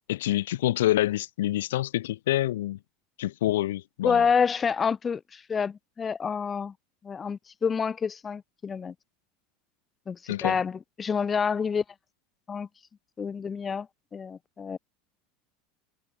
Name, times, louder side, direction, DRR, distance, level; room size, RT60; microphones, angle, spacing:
voice 1, 0.1-2.8 3.2-4.3 10.3-10.6, left 14 dB, 85° left, 3.0 m, -27 dB
voice 2, 4.0-6.7 7.0-8.9 10.1-11.8 12.5-12.7 13.2-13.9 14.1-14.8, left 6 dB, 25° left, 4.2 m, -28 dB
supercardioid pair, 105°, 0 cm